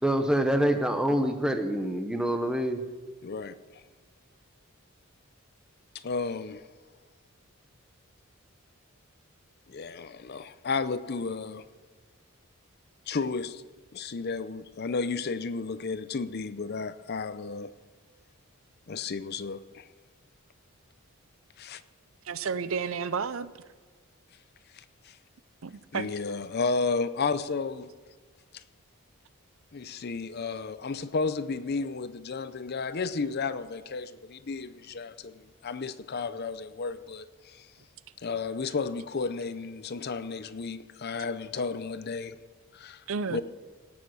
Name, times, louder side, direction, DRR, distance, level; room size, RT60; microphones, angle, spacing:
voice 1, 0.0-2.8, right 1 dB, 5° right, 1.0 m, -26 dB
voice 2, 3.2-3.8 5.9-6.7 9.7-11.6 13.1-13.7 13.9-17.8 18.9-19.9 21.6-21.8 24.7-25.2 25.9-27.9 28.5-28.6 29.7-37.7 38.2-42.4 42.7-43.0 43.3-43.4, left 4 dB, 45° left, 0.5 m, -33 dB
voice 3, 22.2-23.5 25.6-26.1 43.1-43.4, right 5 dB, 65° right, 0.6 m, -31 dB
18.0 x 7.3 x 6.2 m
head